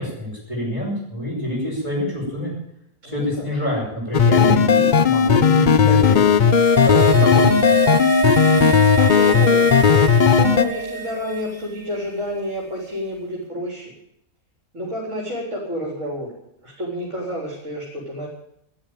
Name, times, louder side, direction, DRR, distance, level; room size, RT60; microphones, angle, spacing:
voice 1, 0.0-2.5 3.0-6.3 6.8-7.4, left 1 dB, 20° left, -9 dB, 7.0 m, -26 dB
voice 2, 3.0-3.5 9.0-9.8 10.2-13.9 14.7-16.3 16.6-18.3, equal, 55° right, -3 dB, 4.8 m, -29 dB
sound 1, 4.1-10.6, left 6 dB, 45° left, 0.7 m, -15 dB
sound 2, 6.1-11.6 11.9-12.0, right 4 dB, 65° left, 4.5 m, -25 dB
13.5 x 11.5 x 9.1 m, 0.75 s
omnidirectional pair, 1.5 m